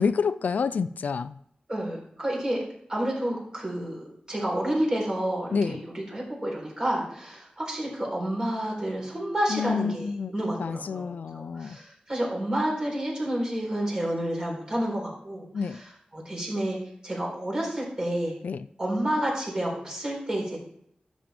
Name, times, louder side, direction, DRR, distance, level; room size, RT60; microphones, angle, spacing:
voice 1, 0.0-1.4 5.5-5.8 9.5-10.3 10.6-11.8 15.5-15.8 18.4-18.7, left 5 dB, 80° left, 14 dB, 0.4 m, -28 dB
voice 2, 1.7-11.1 11.3-15.9 16.1-16.8 17.0-18.4 18.8-20.6, right 1 dB, 30° right, -3 dB, 4.1 m, -30 dB
12.5 x 7.4 x 3.4 m, 0.71 s
wide cardioid pair, 120°, 3 cm